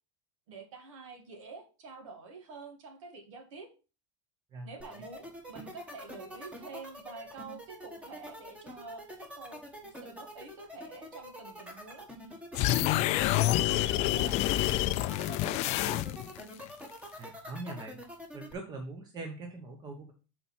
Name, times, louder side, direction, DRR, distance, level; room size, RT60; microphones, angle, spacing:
voice 1, 0.5-3.7 4.6-12.1 12.5-13.5 13.7-14.4 14.9-16.0, right 4 dB, 85° right, 4 dB, 1.8 m, -47 dB
voice 2, 4.5-5.0 17.2-18.0 18.3-20.1, right 2 dB, 25° right, 2 dB, 1.1 m, -42 dB
sound 1, 4.8-18.5, left 1 dB, 10° right, 1.4 m, -45 dB
sound 2, 12.5-16.4, left 16 dB, 45° left, 0.4 m, -27 dB
7.6 x 4.3 x 4.2 m, 0.33 s
supercardioid pair, 135°, 16 cm